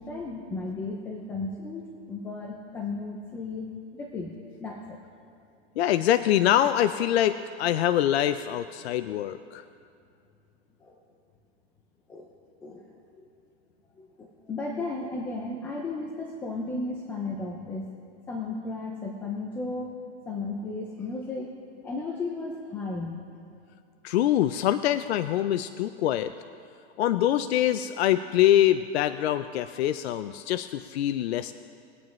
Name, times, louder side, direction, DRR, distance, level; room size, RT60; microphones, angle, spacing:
voice 1, 0.0-4.3 4.6-5.0 10.8-11.0 12.1-12.3 12.6-13.3 14.0-17.9 18.3-19.9 20.3-21.5 21.8-23.2, left 3 dB, 5° left, 1 dB, 0.3 m, -34 dB
voice 2, 5.8-9.6 24.0-26.3 27.0-31.5, left 12 dB, 75° left, 11 dB, 0.5 m, -24 dB
22.0 x 8.9 x 3.1 m, 2.5 s
supercardioid pair, 155°, 33 cm